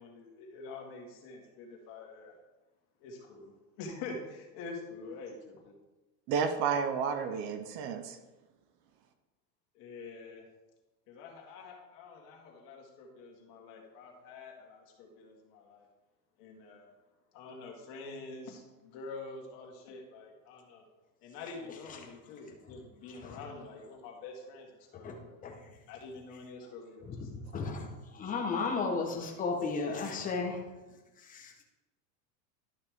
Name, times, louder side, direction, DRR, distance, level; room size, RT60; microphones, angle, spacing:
voice 1, 0.0-2.4 3.0-5.8 9.7-10.5 11.1-15.9 16.4-16.9 17.3-20.8 21.2-25.4 25.8-27.3, left 3 dB, 45° left, 0 dB, 2.1 m, -46 dB
voice 2, 6.3-8.2, right 6 dB, 30° right, 9 dB, 0.4 m, -31 dB
voice 3, 24.9-25.7 27.0-30.6 31.2-31.6, left 4 dB, 15° left, 1 dB, 1.1 m, -35 dB
12.0 x 5.7 x 3.5 m, 1.1 s
supercardioid pair, 155°, 49 cm